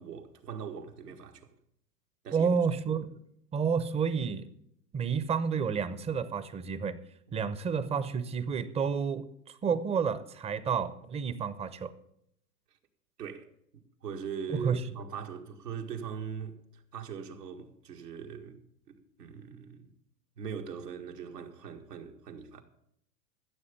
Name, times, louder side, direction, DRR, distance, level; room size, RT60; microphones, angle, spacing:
voice 1, 0.0-1.5 2.2-2.5 13.2-13.5 13.7-18.6 18.9-19.9 20.4-22.6, right 7 dB, 90° right, 1.8 m, -41 dB
voice 2, 2.3-3.2 3.5-4.5 4.9-7.0 7.3-11.9 14.5-14.8, right 6 dB, 15° right, 0.6 m, -30 dB
14.5 x 7.0 x 6.7 m
hypercardioid pair, 110°, 47 cm